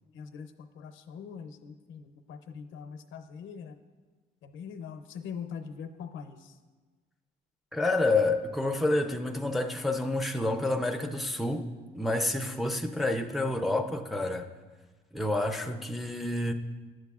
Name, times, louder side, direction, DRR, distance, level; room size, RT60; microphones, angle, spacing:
voice 1, 0.1-3.8 4.4-6.6, left 6 dB, 75° left, 0.6 m, -42 dB
voice 2, 7.7-11.7 11.9-14.5 15.1-16.5, left 2 dB, ahead, 0.5 m, -28 dB
11.0 x 7.7 x 2.4 m
cardioid pair, 90°, 20 cm